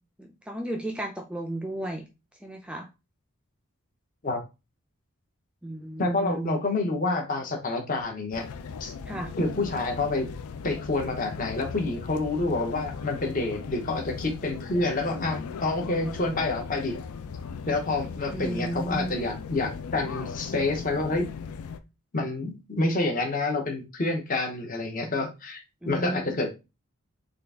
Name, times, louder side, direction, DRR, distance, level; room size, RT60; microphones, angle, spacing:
voice 1, 0.2-2.0 2.4-2.9 5.6-6.6 9.1-9.3 18.3-19.2 25.8-26.2, right 1 dB, 5° right, 3 dB, 0.3 m, -33 dB
voice 2, 6.0-8.4 8.8-8.9 9.4-10.3 10.6-17.0 17.7-21.3 22.1-26.5, left 2 dB, 40° left, 3 dB, 0.8 m, -28 dB
sound 1, 8.3-21.8, left 5 dB, 80° left, 0.4 m, -38 dB
3.8 x 2.4 x 3.4 m, 0.27 s
head